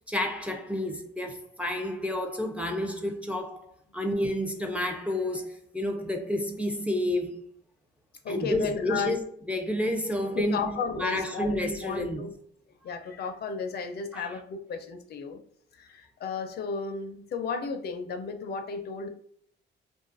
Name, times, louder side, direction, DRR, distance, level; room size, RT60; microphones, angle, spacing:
voice 1, 0.1-3.6 3.9-7.4 8.3-9.2 9.5-12.2 14.1-14.3, left 1 dB, 5° right, 0.4 m, -30 dB
voice 2, 8.2-9.1 10.3-12.3 12.8-15.4 15.7-19.1, left 5 dB, 55° left, 0.4 m, -34 dB
2.5 x 2.3 x 2.4 m
cardioid pair, 90°, 20 cm